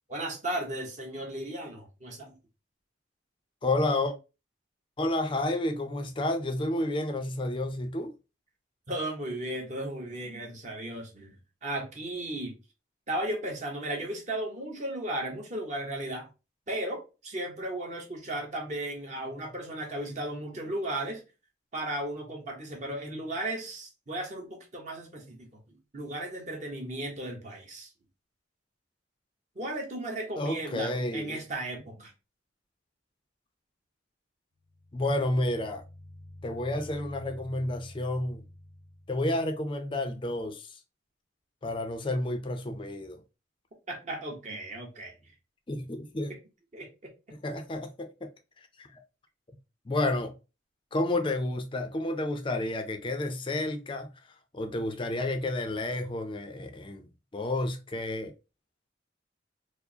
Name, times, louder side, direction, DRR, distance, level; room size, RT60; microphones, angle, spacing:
voice 1, 0.1-2.3 8.9-12.6 13.1-16.3 16.7-21.2 21.7-27.9 29.6-32.1 43.9-45.1 46.7-46.9, right 1 dB, 40° right, 0.9 m, -35 dB
voice 2, 3.6-4.1 5.0-8.1 30.4-31.5 34.9-35.8 36.4-38.4 39.1-40.8 41.6-43.2 45.7-46.3 47.4-48.3 48.6-49.0 49.9-50.3 50.9-54.1 54.5-57.0 57.3-58.3, left 1 dB, 25° left, 0.4 m, -30 dB
sound 1, 34.6-39.4, left 1 dB, 65° right, 0.7 m, -49 dB
4.6 x 2.0 x 2.7 m
head